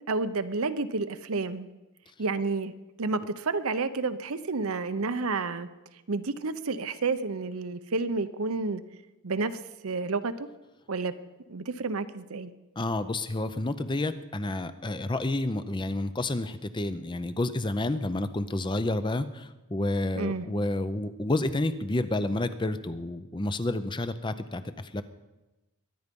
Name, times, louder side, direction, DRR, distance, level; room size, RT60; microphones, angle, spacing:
voice 1, 0.1-1.7 2.2-2.7 3.0-5.7 6.1-8.8 9.2-10.5 10.9-11.1 11.5-12.5 20.1-20.5, right 3 dB, 75° right, 12 dB, 0.8 m, -30 dB
voice 2, 12.8-25.0, left 2 dB, 20° left, 12 dB, 0.5 m, -30 dB
22.5 x 9.6 x 5.3 m, 1.0 s
head